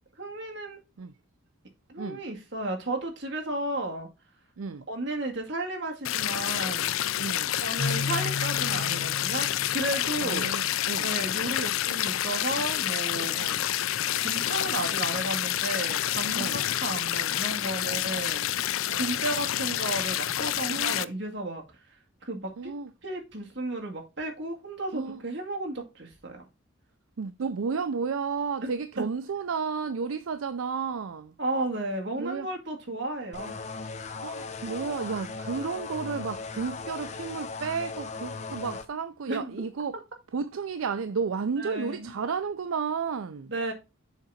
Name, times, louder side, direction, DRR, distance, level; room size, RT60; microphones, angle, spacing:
voice 1, 0.2-0.8 1.9-4.1 4.9-6.9 7.6-10.5 11.0-13.3 14.2-21.8 22.2-22.7 23.0-26.5 28.6-28.7 31.4-33.6 39.3-39.6 41.6-42.2 43.5-43.7, right 2 dB, 55° right, 2.0 m, -33 dB
sound 1, 6.0-21.0, left 12 dB, 75° left, 0.4 m, -28 dB
voice 2, 7.2-7.6 10.2-11.1 13.3-13.6 16.4-16.7 17.8-18.0 18.9-19.1 20.7-21.0 22.6-22.9 24.9-25.2 27.2-31.3 32.2-32.5 34.2-40.0 40.3-43.5, right 5 dB, 75° right, 0.4 m, -32 dB
Keyboard (musical), 7.8-10.7, left 3 dB, 55° left, 2.3 m, -35 dB
sound 2, 33.3-38.9, left 4 dB, 35° left, 0.7 m, -38 dB
7.2 x 3.8 x 5.6 m
head